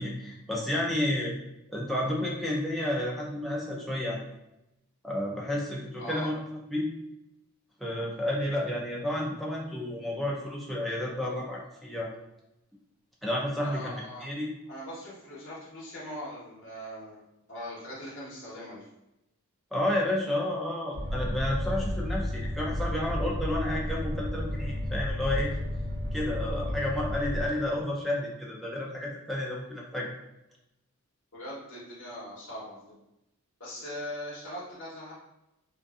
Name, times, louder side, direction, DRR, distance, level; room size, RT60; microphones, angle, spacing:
voice 1, 0.0-1.3 1.7-4.2 5.0-6.4 6.7-6.9 7.8-12.1 13.2-13.9 14.2-14.5 19.7-25.5 26.1-30.1, left 1 dB, ahead, -4 dB, 0.4 m, -31 dB
voice 2, 6.0-6.3 13.6-14.3 14.7-17.2 17.5-18.9 31.3-33.0 33.6-35.1, left 1 dB, 55° left, -7 dB, 0.9 m, -40 dB
sound 1, 20.9-27.5, left 1 dB, 50° right, 0.7 m, -32 dB
2.6 x 2.5 x 2.3 m, 0.90 s
head